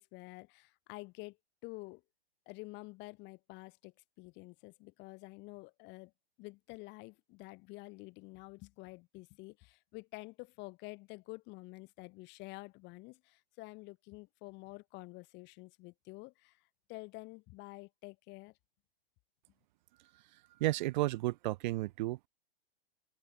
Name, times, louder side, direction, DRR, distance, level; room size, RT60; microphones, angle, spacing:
voice 1, 0.0-1.4 1.6-2.0 2.5-6.1 6.4-16.6 16.9-18.5, left 24 dB, 35° left, 7.5 m, -49 dB
voice 2, 20.6-22.2, right 18 dB, 45° right, 3.2 m, -32 dB
open air
figure-of-eight pair, 115°, 31 cm